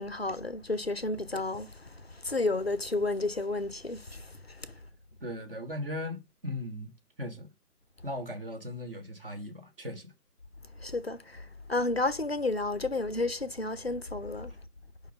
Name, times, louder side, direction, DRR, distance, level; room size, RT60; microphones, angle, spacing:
voice 1, 0.0-1.7 2.2-4.2 10.8-14.5, left 2 dB, 40° left, 0.5 m, -31 dB
voice 2, 5.2-6.9 7.2-7.5 8.0-10.1, left 1 dB, 35° right, 1.3 m, -38 dB
5.4 x 4.0 x 6.0 m
figure-of-eight pair, 155°, 47 cm